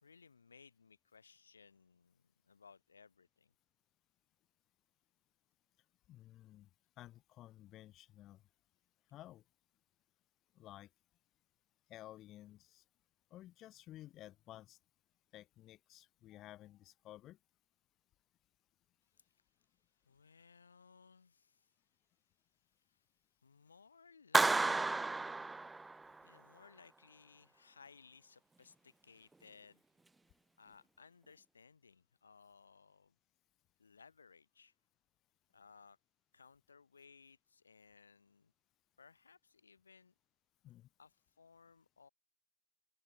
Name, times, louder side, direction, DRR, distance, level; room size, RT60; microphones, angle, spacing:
voice 1, 0.0-3.5 19.1-19.4 20.0-21.8 22.7-23.1 23.4-24.8 26.2-29.8 30.6-33.2 33.8-34.7 35.5-36.0 36.3-38.5 39.0-40.1 41.0-42.1, left 5 dB, 75° left, 3.5 m, -62 dB
voice 2, 6.1-6.7 7.0-8.4 9.1-9.4 10.5-10.9 11.9-12.8 13.3-14.8 15.3-17.4 40.6-40.9, left 14 dB, 35° left, 3.3 m, -54 dB
Clapping, 24.3-26.2, right 3 dB, 10° right, 0.3 m, -32 dB
figure-of-eight pair, 90°, 0 cm